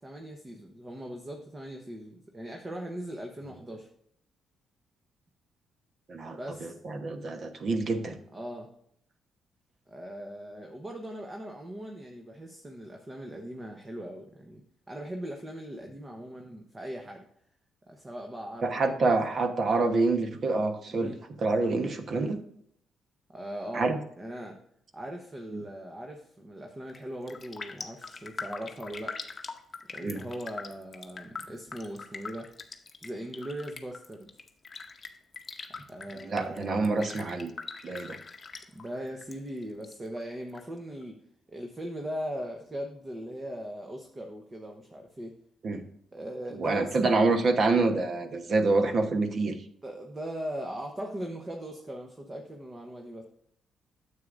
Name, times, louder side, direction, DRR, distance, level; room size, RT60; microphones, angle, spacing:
voice 1, 0.0-3.9 6.4-6.8 8.3-8.7 9.9-17.3 17.9-19.2 20.9-21.2 23.3-24.6 24.9-29.1 29.9-32.5 33.0-34.3 35.7-36.9 38.7-41.2 41.5-45.4 46.1-47.4 48.7-48.8 49.8-53.2, equal, 25° right, 2 dB, 1.0 m, -39 dB
voice 2, 6.1-8.2 18.6-21.1 21.4-22.4 23.7-24.0 25.5-25.6 30.0-30.2 36.2-37.5 37.8-38.2 45.6-45.8 46.6-49.6, right 3 dB, 50° right, 7 dB, 1.1 m, -27 dB
Raindrop, 26.8-27.0 27.3-39.4 39.6-40.6 41.0-41.1, left 4 dB, 35° left, 0.8 m, -42 dB
9.4 x 7.6 x 2.6 m, 0.70 s
cardioid pair, 90°, 0 cm